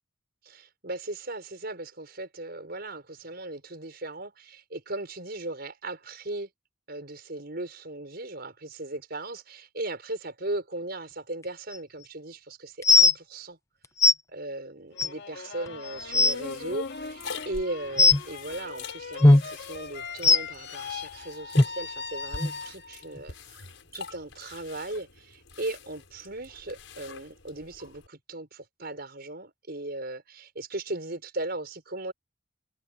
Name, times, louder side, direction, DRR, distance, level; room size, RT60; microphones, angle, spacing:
voice 1, 0.4-6.5 6.9-13.6 14.3-23.7 23.9-32.1, right 2 dB, 55° right, 5.5 m, -37 dB
sound 1, 11.7-11.8 12.8-13.1 14.0-14.1 15.0-15.1 15.7-15.8 16.0-16.3 18.0-18.2 19.2-19.4 20.2-20.4 21.6-21.7 22.4-22.5 23.2-23.3, left 2 dB, 15° left, 0.6 m, -17 dB
sound 2, 14.9-23.1, left 5 dB, 60° left, 2.2 m, -40 dB
sound 3, 16.0-28.1, left 5 dB, 85° left, 6.0 m, -45 dB
head